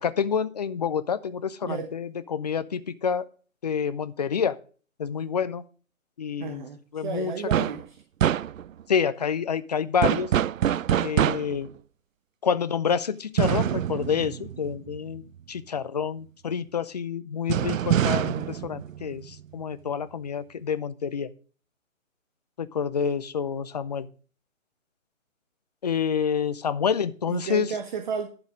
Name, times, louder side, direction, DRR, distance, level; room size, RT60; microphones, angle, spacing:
voice 1, 0.0-3.3 3.6-4.6 5.0-5.6 6.2-6.6 6.9-7.3 8.9-10.3 11.0-11.7 12.4-15.2 15.5-21.3 22.6-24.1 25.8-27.7, left 7 dB, 30° left, 14 dB, 0.5 m, -28 dB
voice 2, 1.6-1.9 6.4-8.0 27.3-28.3, right 6 dB, 35° right, 9 dB, 1.0 m, -33 dB
sound 1, 7.5-7.8 8.2-8.8 10.0-11.7 13.4-15.2 17.5-19.6, right 10 dB, 75° right, 0.5 m, -25 dB
10.5 x 7.1 x 5.0 m, 0.39 s
hypercardioid pair, 155°, 40 cm